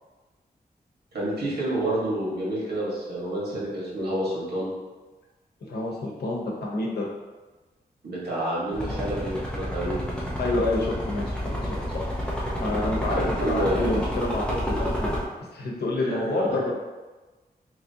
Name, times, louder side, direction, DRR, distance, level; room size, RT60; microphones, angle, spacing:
voice 1, 1.1-4.7 8.0-10.0 13.1-14.0 16.0-16.6, right 1 dB, 90° right, -6 dB, 1.5 m, -29 dB
voice 2, 5.7-7.1 10.4-12.1 12.6-15.1 15.5-16.7, left 2 dB, 90° left, -2 dB, 0.8 m, -28 dB
sound 1, 8.7-15.2, equal, 5° left, 0.7 m, -29 dB
3.8 x 3.0 x 2.7 m, 1.2 s
wide cardioid pair, 125°, 16 cm